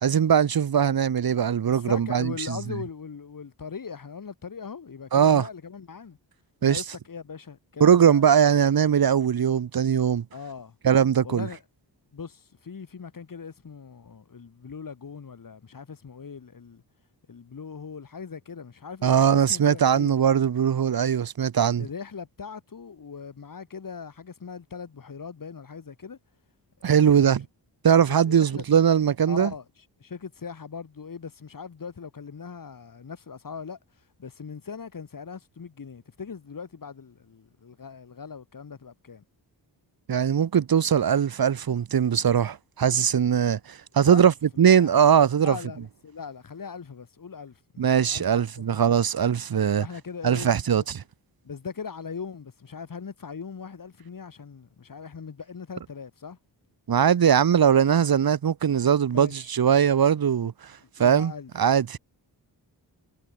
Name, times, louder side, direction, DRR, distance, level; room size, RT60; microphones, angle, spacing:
voice 1, 0.0-2.6 5.1-5.5 6.6-6.8 7.8-10.2 10.8-11.5 19.0-21.9 26.8-27.4 27.8-29.5 40.1-44.3 44.6-45.6 47.8-49.9 50.2-51.0 56.9-60.5 61.0-61.3 61.6-62.0, right 8 dB, 55° right, 1.1 m, -21 dB
voice 2, 1.7-6.2 6.6-8.3 10.3-10.8 11.2-11.6 12.1-16.8 17.3-20.1 21.8-26.2 26.8-27.3 28.1-28.6 29.3-29.6 30.0-33.8 34.2-39.2 44.1-44.3 44.5-45.1 45.4-48.4 48.7-48.9 49.8-50.5 51.4-56.4 59.1-59.5 60.8-61.5, left 6 dB, 45° left, 2.4 m, -40 dB
cardioid pair, 85°, 44 cm